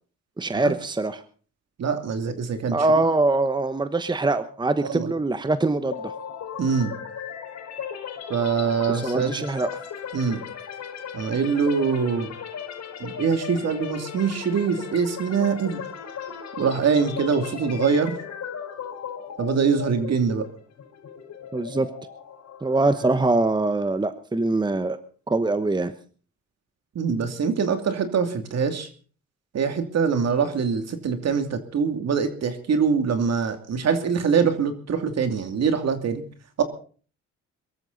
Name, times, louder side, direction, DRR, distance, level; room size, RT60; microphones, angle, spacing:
voice 1, 0.4-1.2 2.7-6.1 8.9-9.7 21.5-21.9 22.6-25.0 25.3-25.9, right 2 dB, 15° right, 11 dB, 1.1 m, -23 dB
voice 2, 1.8-2.8 4.8-5.1 6.6-6.9 8.3-9.3 10.1-10.4 11.1-12.3 13.0-15.8 16.6-18.1 19.4-20.5 26.9-28.9 29.5-36.2 36.6-36.7, right 6 dB, 60° right, 7 dB, 2.8 m, -24 dB
sound 1, 5.9-23.7, left 8 dB, 65° left, 4.9 m, -37 dB
23.0 x 14.0 x 4.1 m, 0.41 s
cardioid pair, 90°, 30 cm